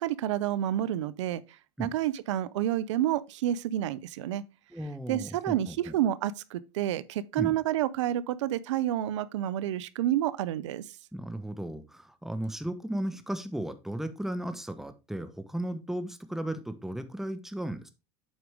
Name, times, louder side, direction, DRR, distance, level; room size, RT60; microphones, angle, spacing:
voice 1, 0.0-1.4 1.8-4.4 5.1-10.8, right 12 dB, 90° right, 0.5 m, -29 dB
voice 2, 4.7-6.0 7.4-7.5 11.1-17.9, right 1 dB, ahead, 1.0 m, -35 dB
8.0 x 5.0 x 3.5 m
supercardioid pair, 95°, 15 cm